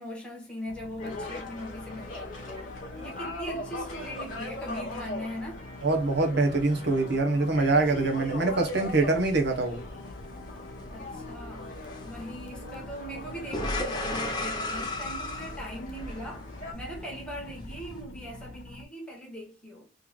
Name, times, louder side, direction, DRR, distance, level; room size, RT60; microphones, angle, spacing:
voice 1, 0.0-2.7 3.0-5.7 10.9-19.9, equal, 5° left, 1.4 m, -40 dB
sound 1, 0.7-18.9, left 2 dB, 55° left, 0.5 m, -47 dB
sound 2, 1.0-16.7, left 2 dB, 40° left, 1.6 m, -41 dB
voice 2, 5.8-9.8, right 3 dB, 55° right, 1.0 m, -24 dB
sound 3, 7.5-18.0, left 1 dB, 20° left, 0.8 m, -38 dB
3.7 x 3.2 x 2.3 m
head